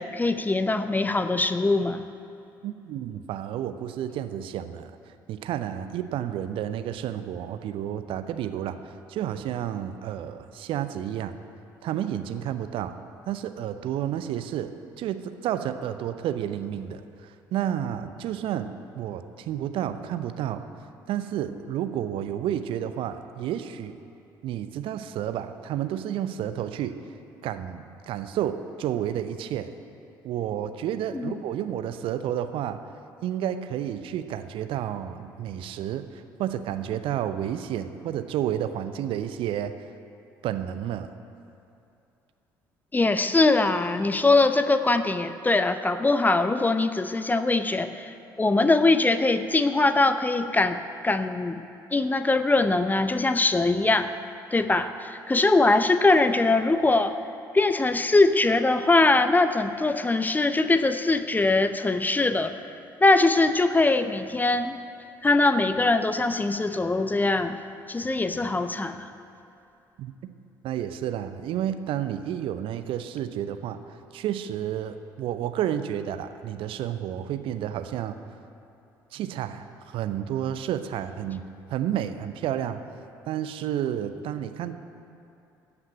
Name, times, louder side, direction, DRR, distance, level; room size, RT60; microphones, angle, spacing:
voice 1, 0.0-2.0 31.1-31.4 42.9-50.8 51.0-51.6 51.9-54.1 54.5-57.1 57.5-62.5 63.0-64.8 65.2-67.6 67.9-69.1, left 2 dB, 15° left, 10 dB, 0.6 m, -22 dB
voice 2, 2.6-4.9 5.3-11.3 11.8-12.9 13.3-20.6 21.1-23.9 24.4-27.0 27.4-29.7 30.2-32.8 33.2-39.7 40.4-41.1 70.0-70.1 70.6-73.8 74.1-78.2 79.1-81.4 81.7-82.8 83.3-84.7, right 10 dB, 55° right, 10 dB, 0.7 m, -31 dB
14.5 x 6.1 x 9.0 m, 2.7 s
figure-of-eight pair, 50°, 11 cm